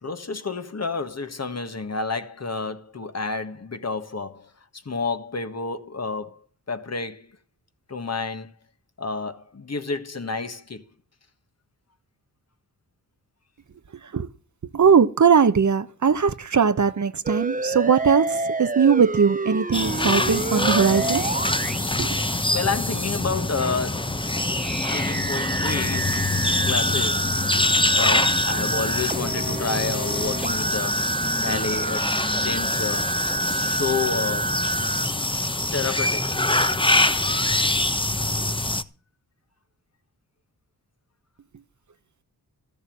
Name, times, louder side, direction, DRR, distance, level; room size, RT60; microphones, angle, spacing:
voice 1, 0.0-6.4 6.7-7.3 7.9-8.5 9.0-10.8 22.5-24.2 24.9-26.2 26.6-27.3 27.9-31.0 31.4-33.1 33.5-34.6 35.7-36.3, left 4 dB, 40° left, 1.5 m, -30 dB
voice 2, 14.7-21.2 22.0-22.1, right 6 dB, 45° right, 1.0 m, -20 dB
sound 1, 17.2-23.2 24.4-35.1, right 3 dB, 20° right, 0.9 m, -29 dB
sound 2, 19.7-38.8, left 2 dB, 15° left, 1.0 m, -24 dB
13.5 x 7.0 x 8.6 m
cardioid pair, 50°, 40 cm